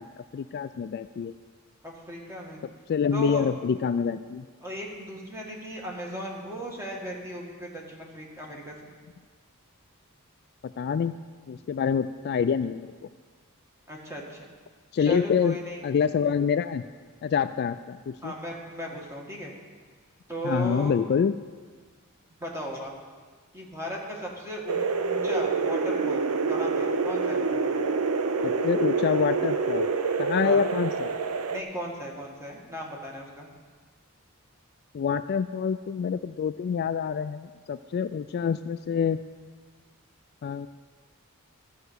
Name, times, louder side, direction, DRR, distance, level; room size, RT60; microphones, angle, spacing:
voice 1, 0.0-1.3 2.9-4.5 10.6-11.2 11.5-12.9 14.9-15.6 15.8-16.8 17.2-18.3 20.4-21.3 28.4-29.9 30.2-31.1 34.9-39.2 40.4-40.7, left 6 dB, 45° left, 12 dB, 0.3 m, -26 dB
voice 2, 1.8-2.6 3.1-3.5 4.6-8.8 13.9-14.4 15.0-15.8 18.2-19.5 20.3-21.0 22.4-22.9 23.5-27.6 30.4-30.7 31.5-33.5, equal, 10° right, -1 dB, 1.8 m, -36 dB
sound 1, 24.7-31.6, right 4 dB, 70° right, 0.6 m, -27 dB
13.0 x 5.7 x 8.0 m, 1.5 s
head